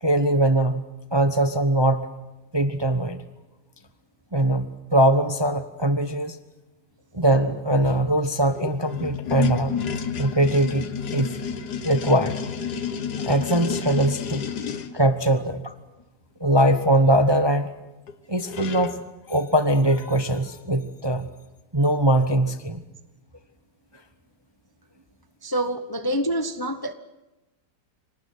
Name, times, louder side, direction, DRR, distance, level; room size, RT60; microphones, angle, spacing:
voice 1, 0.0-0.8 1.1-2.1 2.5-3.2 4.3-6.4 7.1-9.8 10.2-11.4 11.8-12.4 13.2-14.4 14.9-15.7 16.4-17.7 18.3-19.0 19.3-21.3 21.7-22.8, right 1 dB, 20° right, 9 dB, 0.8 m, -21 dB
sound 1, 8.4-14.9 18.1-18.2 18.4-19.0, left 7 dB, 70° left, 1.8 m, -30 dB
voice 2, 25.4-26.9, right 1 dB, 15° left, 8 dB, 0.8 m, -26 dB
25.5 x 19.0 x 9.4 m, 1.0 s
omnidirectional pair, 1.9 m